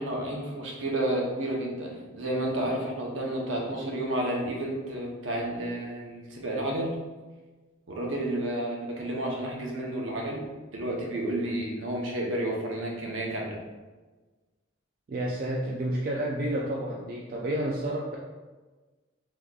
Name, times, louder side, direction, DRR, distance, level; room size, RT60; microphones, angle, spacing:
voice 1, 0.0-7.0 7.9-10.4 10.7-13.6, right 1 dB, 70° right, -1 dB, 0.7 m, -31 dB
voice 2, 15.1-18.2, right 1 dB, 50° right, -2 dB, 0.3 m, -30 dB
3.6 x 2.9 x 2.3 m, 1.3 s
head